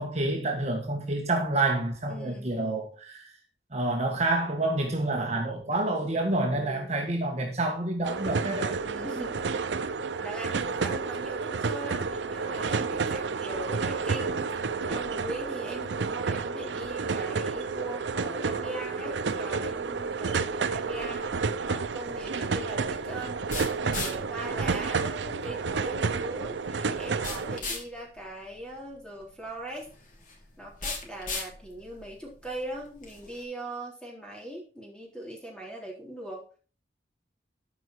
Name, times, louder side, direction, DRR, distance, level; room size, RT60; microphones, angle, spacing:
voice 1, 0.0-3.3 3.7-8.7, right 2 dB, 40° right, 1.5 m, -28 dB
voice 2, 2.1-2.5 5.2-5.7 6.5-6.9 8.8-9.5 10.2-14.5 14.8-23.5 23.8-29.9 30.6-36.4, right 1 dB, 5° left, 3.7 m, -40 dB
sound 1, 8.0-27.6, right 4 dB, 85° right, 0.6 m, -30 dB
sound 2, 20.8-33.4, left 3 dB, 50° left, 3.0 m, -41 dB
12.5 x 5.6 x 4.8 m
head